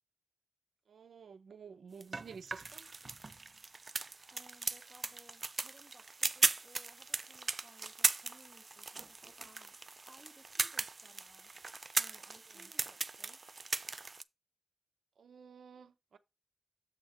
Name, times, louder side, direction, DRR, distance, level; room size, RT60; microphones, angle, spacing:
voice 1, 0.9-2.9 12.5-12.7 15.2-16.2, right 6 dB, 80° right, 0.8 m, -52 dB
sound 1, 2.0-14.2, right 3 dB, 40° right, 0.3 m, -38 dB
voice 2, 4.3-9.8 10.1-11.5 12.0-13.4, right 1 dB, 5° right, 1.6 m, -62 dB
7.4 x 3.1 x 5.8 m
wide cardioid pair, 90°, 0 cm